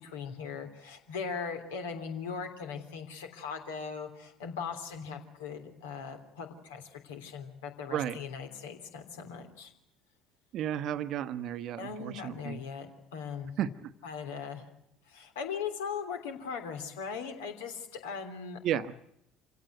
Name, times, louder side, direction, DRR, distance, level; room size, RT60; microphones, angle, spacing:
voice 1, 0.0-9.7 11.8-13.6 14.0-14.7 15.1-18.6, left 6 dB, 70° left, 5 dB, 3.2 m, -39 dB
voice 2, 10.5-12.6 13.6-13.9 18.6-18.9, right 10 dB, 50° right, 13 dB, 1.1 m, -33 dB
27.0 x 17.0 x 9.5 m, 0.80 s
figure-of-eight pair, 60°, 0 cm